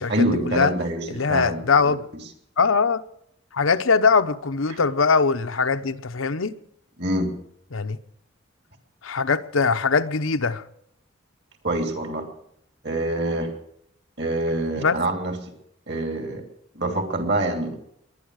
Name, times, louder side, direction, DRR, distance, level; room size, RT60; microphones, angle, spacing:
voice 1, 0.1-1.9 4.7-4.8 7.0-7.3 11.6-12.3 12.8-13.5 14.2-15.5 15.9-16.4 16.7-17.8, right 1 dB, 55° right, 2.9 m, -26 dB
voice 2, 1.1-2.0 2.6-3.0 3.5-6.6 7.7-8.0 9.0-10.6 14.8-15.0, left 5 dB, 85° left, 0.8 m, -21 dB
22.0 x 10.0 x 6.4 m
head